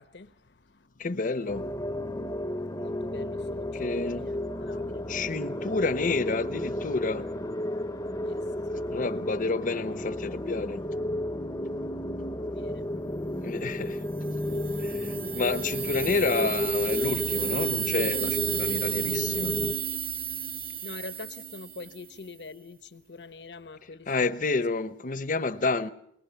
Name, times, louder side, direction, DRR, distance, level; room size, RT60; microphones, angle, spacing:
voice 1, 0.0-1.1 2.6-5.1 8.2-8.4 12.4-12.8 14.6-14.9 20.8-24.5, left 3 dB, 70° left, 1.1 m, -45 dB
voice 2, 1.0-1.7 3.8-4.3 5.1-7.3 8.9-10.8 13.4-14.0 15.3-19.5 24.1-25.9, left 3 dB, 50° left, 0.9 m, -29 dB
sound 1, 1.5-19.7, left 1 dB, 20° left, 0.8 m, -33 dB
sound 2, 14.2-22.1, right 9 dB, 55° right, 1.5 m, -32 dB
22.0 x 21.5 x 7.0 m
head